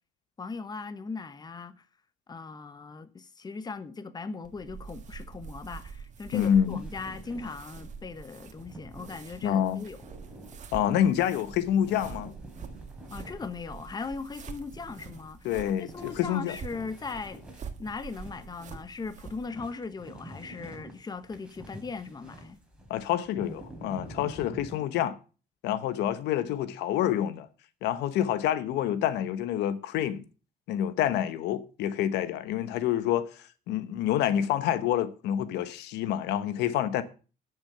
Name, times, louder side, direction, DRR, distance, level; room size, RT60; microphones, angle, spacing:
voice 1, 0.4-1.9 2.3-10.0 13.1-15.5 15.8-17.4 17.8-22.6, left 4 dB, 25° left, 1.1 m, -39 dB
sound 1, 4.4-19.5, right 6 dB, 45° right, 1.7 m, -46 dB
voice 2, 6.3-6.8 9.4-9.8 10.7-12.3 15.4-16.5 22.9-25.2 25.6-27.5 27.8-30.2 30.7-37.0, left 10 dB, 85° left, 1.1 m, -27 dB
sound 2, 6.4-24.7, right 1 dB, 5° right, 4.0 m, -48 dB
10.0 x 7.1 x 6.7 m
cardioid pair, 110°, 17 cm